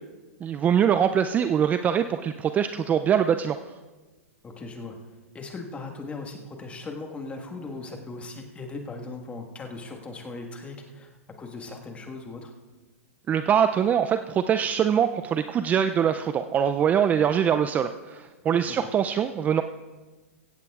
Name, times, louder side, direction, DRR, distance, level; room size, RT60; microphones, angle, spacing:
voice 1, 0.4-3.6 13.3-19.6, right 8 dB, 20° right, 9 dB, 0.4 m, -23 dB
voice 2, 4.4-5.0 5.3-11.1 11.4-12.5 18.7-18.8, left 3 dB, 15° left, 3 dB, 1.6 m, -38 dB
16.5 x 14.5 x 2.4 m, 1.2 s
hypercardioid pair, 120°, 8 cm